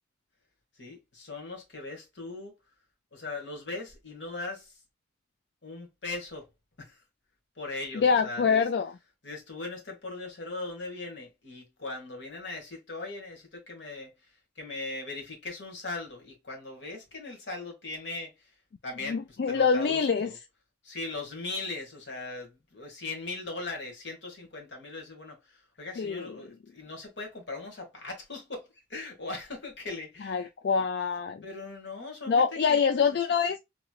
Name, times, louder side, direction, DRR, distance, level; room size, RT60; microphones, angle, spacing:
voice 1, 0.8-2.5 3.1-4.8 5.6-6.5 6.8-7.0 7.5-8.6 9.2-18.5 18.8-19.2 19.5-20.4 20.8-30.5 31.4-32.8, left 3 dB, 85° left, 1.4 m, -39 dB
voice 2, 7.9-8.9 19.1-20.3 26.0-26.3 30.2-31.4 32.3-33.6, left 6 dB, 65° left, 0.3 m, -25 dB
3.0 x 2.9 x 2.3 m
head